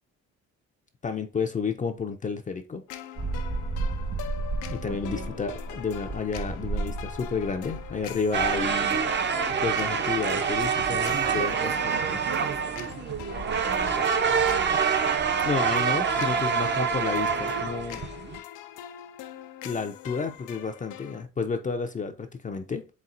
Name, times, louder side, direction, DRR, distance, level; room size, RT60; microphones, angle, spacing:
voice 1, 1.0-2.8 4.7-9.0 9.6-11.5 11.8-12.2 15.4-18.0 19.6-22.9, left 5 dB, 25° left, 0.4 m, -31 dB
sound 1, 2.9-21.2, left 11 dB, 85° left, 0.5 m, -42 dB
sound 2, 3.2-15.5, right 3 dB, 50° right, 1.2 m, -37 dB
voice 2, 4.9-5.4 11.2-14.2, right 6 dB, 70° right, 1.3 m, -39 dB
sound 3, 8.3-18.4, right 6 dB, 35° right, 0.6 m, -26 dB
4.2 x 3.6 x 2.5 m
cardioid pair, 90°, 30 cm